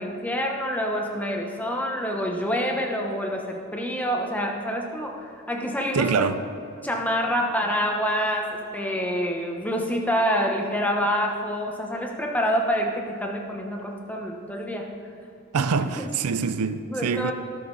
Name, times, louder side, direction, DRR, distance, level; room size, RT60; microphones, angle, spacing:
voice 1, 0.0-6.3 6.8-14.9 16.0-16.1 16.9-17.3, equal, 5° left, 1 dB, 1.1 m, -27 dB
voice 2, 5.9-6.4 15.5-17.3, right 5 dB, 85° right, 11 dB, 0.5 m, -25 dB
18.0 x 6.6 x 4.1 m, 2.7 s
head